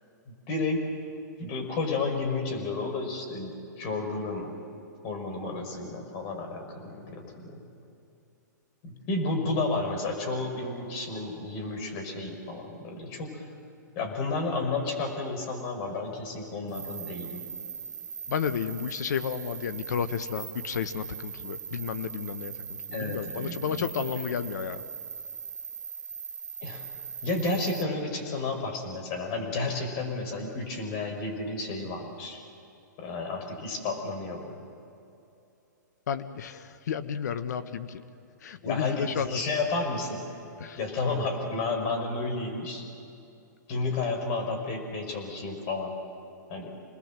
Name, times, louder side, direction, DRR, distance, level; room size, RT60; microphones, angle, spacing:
voice 1, 0.3-0.8 1.4-3.5 3.8-4.5 5.0-7.6 8.8-13.4 14.0-17.4 22.9-24.2 26.6-26.9 27.2-32.4 33.0-34.6 38.6-40.2 40.8-42.8 43.7-46.0 46.5-46.7, left 3 dB, 40° left, 3 dB, 5.7 m, -32 dB
voice 2, 6.9-7.2 18.3-22.5 22.9-24.8 36.1-38.0 38.4-39.4 40.6-40.8, left 7 dB, 65° left, 11 dB, 1.4 m, -32 dB
sound 1, 16.7-27.8, right 6 dB, 80° right, 1.1 m, -40 dB
27.0 x 20.5 x 7.7 m, 2.7 s
hypercardioid pair, 115°, 10 cm